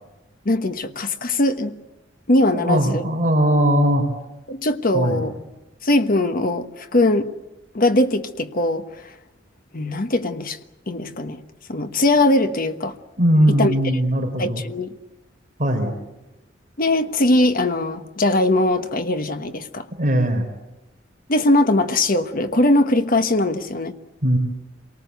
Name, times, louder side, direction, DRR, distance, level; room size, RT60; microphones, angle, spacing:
voice 1, 0.4-1.8 2.3-3.0 4.5-5.3 5.8-7.3 7.7-9.1 9.7-10.6 10.9-11.4 11.7-12.9 13.5-14.0 14.4-15.0 16.8-19.8 21.3-24.0, left 2 dB, 50° left, 1.3 m, -20 dB
voice 2, 2.6-4.0 4.9-5.2 13.2-14.6 15.6-15.9 20.0-20.4 24.2-24.4, right 1 dB, 45° right, 3.7 m, -19 dB
27.5 x 19.0 x 8.1 m
head